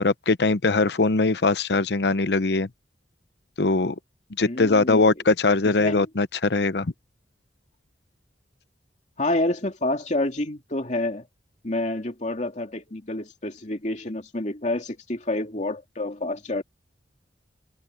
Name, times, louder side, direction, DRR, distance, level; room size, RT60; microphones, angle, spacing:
voice 1, 0.0-2.7 3.6-3.9 4.4-6.9, left 3 dB, 65° left, 0.8 m, -21 dB
voice 2, 4.5-5.1 5.8-6.1 9.2-11.3 11.6-16.6, left 2 dB, 40° left, 2.8 m, -28 dB
head